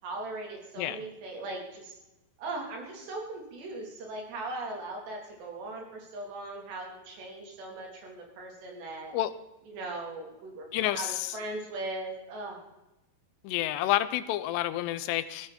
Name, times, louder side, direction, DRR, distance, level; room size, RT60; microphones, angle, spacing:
voice 1, 0.0-2.0 2.4-9.2 9.7-12.6, right 2 dB, 80° right, 0 dB, 5.6 m, -39 dB
voice 2, 10.7-11.3 13.4-15.5, left 14 dB, 85° left, 13 dB, 2.9 m, -29 dB
16.5 x 14.5 x 4.3 m, 0.95 s
omnidirectional pair, 4.8 m